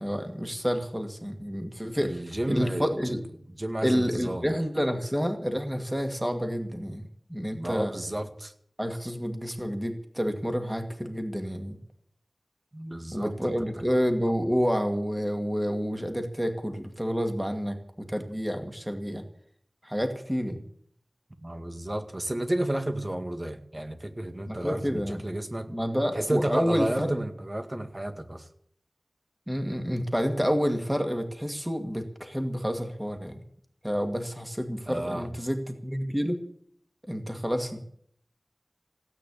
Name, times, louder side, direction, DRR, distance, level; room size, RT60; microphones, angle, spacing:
voice 1, 0.0-3.2 3.8-7.9 8.8-11.8 13.1-19.2 19.8-20.6 24.5-25.3 25.7-27.1 29.5-33.4 33.8-36.4 37.1-37.8, equal, 5° right, 5 dB, 2.3 m, -29 dB
voice 2, 2.0-3.1 3.6-4.5 7.5-8.5 12.7-13.5 21.4-25.7 26.1-28.5 34.9-35.3, right 1 dB, 30° right, 7 dB, 1.9 m, -31 dB
16.5 x 9.0 x 8.6 m, 0.64 s
wide cardioid pair, 60°, 0 cm